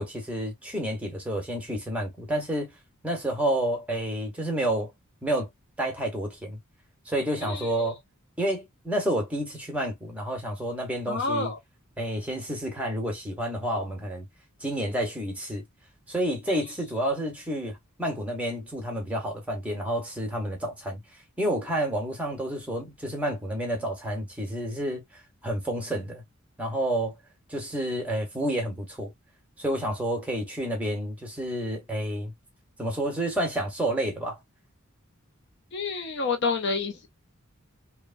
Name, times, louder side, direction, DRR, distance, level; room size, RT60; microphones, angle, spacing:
voice 1, 0.0-2.7 3.0-4.9 5.2-5.5 5.8-6.6 7.1-8.0 8.4-11.5 12.0-14.3 14.6-15.6 16.1-21.0 21.4-25.0 25.4-26.2 26.6-27.1 27.5-29.1 29.6-32.3 32.8-34.4, right 1 dB, 5° right, 1.1 m, -29 dB
voice 2, 7.4-7.9 11.1-11.6 16.5-16.6 35.7-37.1, left 4 dB, 55° left, 0.6 m, -29 dB
3.2 x 2.2 x 2.5 m
head